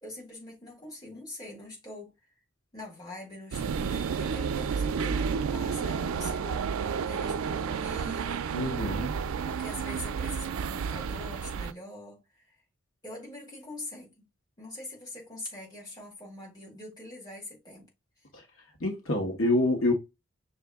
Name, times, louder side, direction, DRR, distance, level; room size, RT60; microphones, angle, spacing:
voice 1, 0.0-2.1 2.7-8.8 9.5-12.6 13.0-14.2 14.6-17.9, left 2 dB, 20° left, 1.9 m, -44 dB
sound 1, 3.5-11.7, right 6 dB, 85° right, 0.4 m, -31 dB
voice 2, 8.5-9.2 18.3-18.4 18.8-19.9, left 2 dB, 80° left, 1.2 m, -27 dB
5.9 x 2.5 x 3.5 m
head